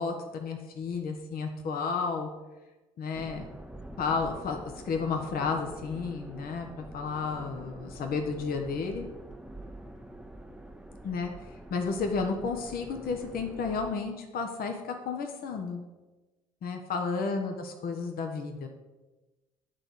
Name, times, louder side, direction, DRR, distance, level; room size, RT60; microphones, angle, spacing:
voice 1, 0.0-2.3 3.0-3.4 4.0-9.1 11.0-15.8 16.6-18.7, left 4 dB, 50° left, 4 dB, 1.0 m, -32 dB
sound 1, 3.1-13.9, right 1 dB, 5° right, 0.8 m, -46 dB
9.5 x 3.9 x 6.4 m, 1.1 s
hypercardioid pair, 50°, 19 cm